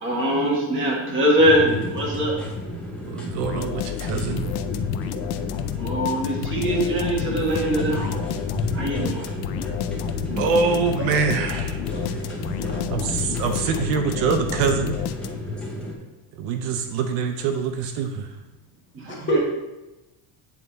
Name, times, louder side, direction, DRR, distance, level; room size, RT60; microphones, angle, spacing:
voice 1, 0.0-2.4 5.8-8.3 8.7-9.2 18.9-19.4, equal, 25° right, -3 dB, 1.5 m, -22 dB
sound 1, 1.4-15.9, left 2 dB, ahead, 0.7 m, -31 dB
voice 2, 3.1-4.5 10.4-11.8 12.9-15.0 16.4-18.3 19.0-19.2, right 5 dB, 65° right, 6 dB, 0.7 m, -24 dB
sound 2, 3.4-15.6, left 12 dB, 75° left, 0.5 m, -31 dB
voice 3, 12.3-12.7 19.1-19.4, right 1 dB, 25° left, -3 dB, 1.2 m, -27 dB
8.3 x 3.3 x 4.0 m, 1.0 s
cardioid pair, 165°, 47 cm